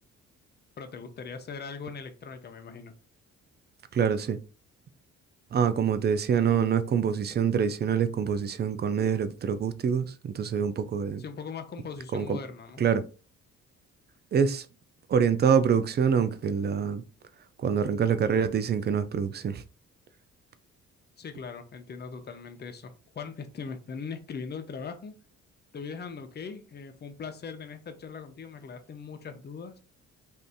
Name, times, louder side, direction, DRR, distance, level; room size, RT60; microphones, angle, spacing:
voice 1, 0.8-2.9 11.2-12.8 21.2-25.1 25.7-29.8, left 5 dB, 35° left, 0.6 m, -40 dB
voice 2, 3.9-4.4 5.5-11.2 12.1-12.4 12.8-13.0 14.3-14.7 15.1-17.0 17.6-19.6, right 7 dB, 35° right, 0.4 m, -25 dB
2.7 x 2.5 x 3.4 m
cardioid pair, 90°, 30 cm